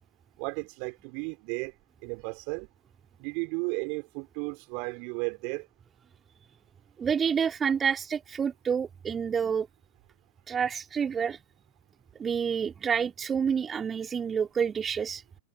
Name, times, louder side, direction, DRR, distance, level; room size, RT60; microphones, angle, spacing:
voice 1, 0.4-1.7 2.0-2.7 3.2-5.7, right 37 dB, 45° right, 4.8 m, -34 dB
voice 2, 7.0-9.7 10.5-11.4 12.2-15.2, right 7 dB, 20° right, 2.6 m, -28 dB
figure-of-eight pair, 90°, 0 cm